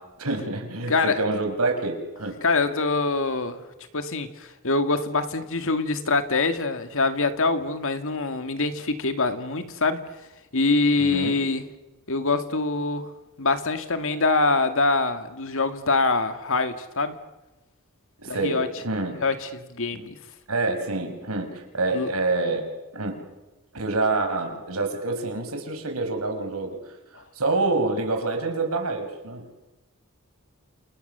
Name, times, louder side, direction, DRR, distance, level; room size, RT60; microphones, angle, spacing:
voice 1, 0.0-2.4 11.0-11.4 18.2-19.2 19.9-20.1 20.5-22.7 22.9-23.2 23.7-26.8 27.3-29.6, right 3 dB, 80° right, 5 dB, 5.4 m, -27 dB
voice 2, 0.9-1.2 2.4-3.6 3.9-10.1 10.5-11.6 12.1-13.1 13.4-17.2 18.3-18.7 19.2-20.2 21.9-22.1, left 3 dB, 65° left, 9 dB, 2.2 m, -24 dB
29.0 x 29.0 x 6.9 m, 1.1 s
head